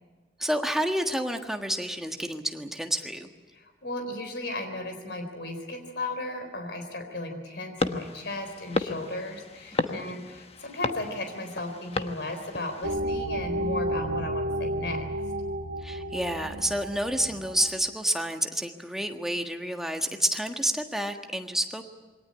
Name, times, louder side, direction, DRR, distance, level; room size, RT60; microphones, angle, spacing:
voice 1, 0.4-3.3 9.8-10.0 15.8-21.9, right 1 dB, ahead, 4 dB, 1.5 m, -29 dB
voice 2, 3.5-15.1, left 2 dB, 70° left, 6 dB, 4.0 m, -35 dB
sound 1, 7.8-12.9, left 3 dB, 35° left, 1.2 m, -34 dB
sound 2, 12.8-17.9, right 1 dB, 85° right, 1.1 m, -32 dB
22.5 x 18.5 x 9.9 m, 1.3 s
head